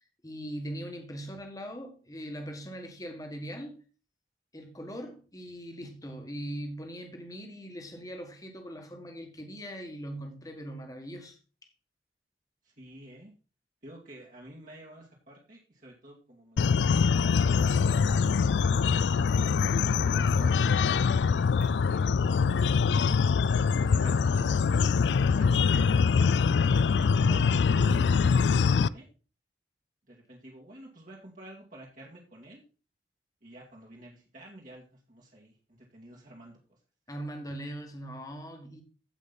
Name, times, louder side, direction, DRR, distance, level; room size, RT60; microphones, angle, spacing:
voice 1, 0.2-3.8 4.5-11.4 37.1-38.8, equal, 20° left, 1.8 m, -40 dB
voice 2, 12.6-13.3 13.8-19.4 20.0-23.2 23.8-26.0 26.7-29.1 30.1-32.6 33.4-36.8, right 1 dB, 45° right, 2.1 m, -50 dB
sound 1, 16.6-28.9, left 5 dB, 75° left, 0.4 m, -24 dB
15.5 x 5.4 x 4.1 m
head